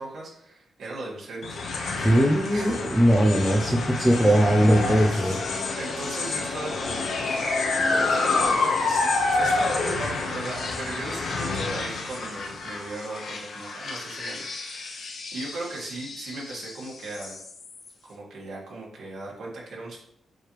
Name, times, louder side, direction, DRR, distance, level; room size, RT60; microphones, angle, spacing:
voice 1, 0.0-1.6 2.5-2.8 3.1-3.3 4.0-4.1 5.1-5.4 5.8-7.3 7.9-17.3 18.0-20.0, right 2 dB, 65° right, -4 dB, 2.6 m, -38 dB
sound 1, 1.4-17.9, left 3 dB, 70° left, 1.1 m, -28 dB
voice 2, 2.0-5.4, equal, 5° right, 1 dB, 0.7 m, -20 dB
7.6 x 3.3 x 5.0 m, 0.70 s
wide cardioid pair, 175°, 0 cm